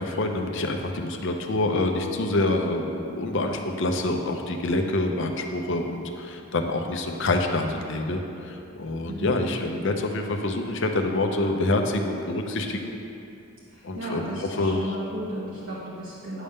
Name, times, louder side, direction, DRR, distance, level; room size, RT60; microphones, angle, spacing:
voice 1, 0.0-12.9 13.8-14.8, left 2 dB, 55° left, 4 dB, 0.6 m, -26 dB
voice 2, 9.1-9.4 13.7-16.4, right 1 dB, 60° right, -9 dB, 1.2 m, -34 dB
9.7 x 3.6 x 6.6 m, 2.8 s
head